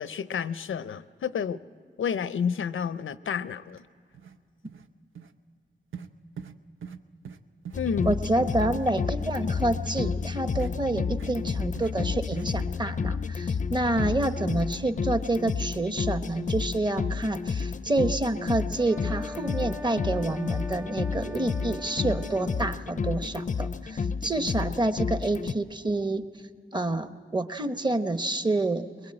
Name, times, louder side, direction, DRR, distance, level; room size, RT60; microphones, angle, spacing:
voice 1, 0.0-1.6 2.0-3.8 7.8-8.2, left 7 dB, 85° left, 15 dB, 0.6 m, -30 dB
sound 1, 3.7-3.8 4.1-4.4 4.7-4.9 5.2-5.3 5.9-6.1 6.4-6.6 6.8-7.0 7.3-7.4 7.7-8.9 9.2-9.3 9.8-9.9 10.6-10.7 11.1-11.3 11.8-11.9 12.3-12.5, right 7 dB, 90° right, 0.8 m, -42 dB
sound 2, 7.7-25.5, left 5 dB, 40° left, 0.5 m, -31 dB
voice 2, 8.1-26.2 26.7-28.8, right 2 dB, 20° right, 10 dB, 1.0 m, -28 dB
sound 3, 18.7-22.7, left 1 dB, 5° right, 0.6 m, -42 dB
22.0 x 21.5 x 8.8 m, 2.2 s
wide cardioid pair, 85°, 20 cm